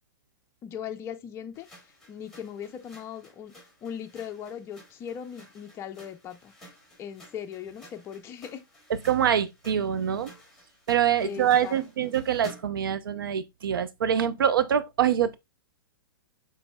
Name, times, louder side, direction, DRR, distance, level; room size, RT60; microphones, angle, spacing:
voice 1, 0.6-1.7 2.1-3.5 3.8-6.5 7.0-8.7 11.2-11.8 12.0-12.2, left 8 dB, 20° left, 0.5 m, -39 dB
sound 1, 1.5-12.9, equal, 5° left, 2.0 m, -53 dB
voice 2, 8.9-10.3 10.9-15.4, right 9 dB, 80° right, 0.5 m, -25 dB
5.9 x 3.1 x 2.2 m
hypercardioid pair, 125°, 12 cm